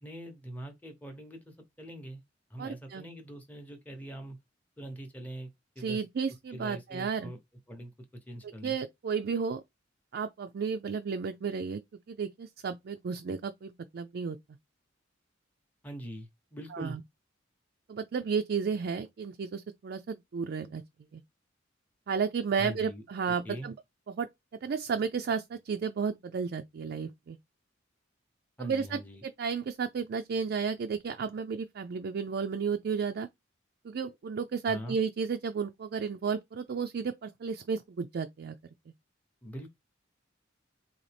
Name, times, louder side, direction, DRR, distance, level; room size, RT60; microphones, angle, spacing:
voice 1, 0.0-2.2 2.5-4.4 4.8-5.5 5.8-6.0 6.5-7.4 7.7-8.8 15.8-17.0 22.6-23.7 28.6-29.2 34.7-35.0 39.4-39.7, equal, 10° left, 0.8 m, -43 dB
voice 2, 2.6-3.0 5.8-7.3 8.4-9.6 10.1-11.8 12.1-14.4 16.7-17.0 17.9-20.8 21.1-21.2 22.1-23.7 24.1-24.3 24.5-27.4 28.6-33.3 33.8-38.6, right 6 dB, 55° right, 0.4 m, -33 dB
4.0 x 2.7 x 3.3 m
head